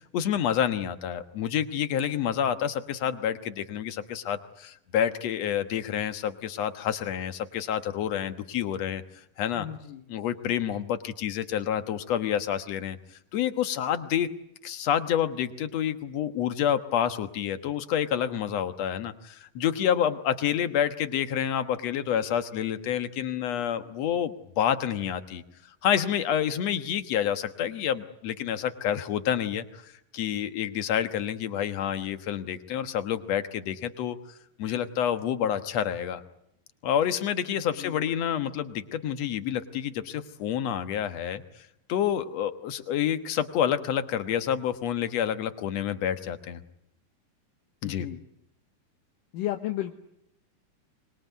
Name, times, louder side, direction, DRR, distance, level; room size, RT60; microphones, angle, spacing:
voice 1, 0.1-9.0 9.4-9.7 10.1-13.0 13.3-14.3 14.6-25.4 25.8-34.2 34.6-36.2 36.8-41.4 41.9-46.6 47.8-48.1, left 9 dB, 60° left, 11 dB, 2.1 m, -28 dB
voice 2, 9.6-10.0 37.8-38.0 47.8-48.2 49.3-49.9, left 13 dB, 75° left, 5 dB, 2.8 m, -33 dB
24.5 x 21.5 x 9.3 m, 0.77 s
omnidirectional pair, 4.0 m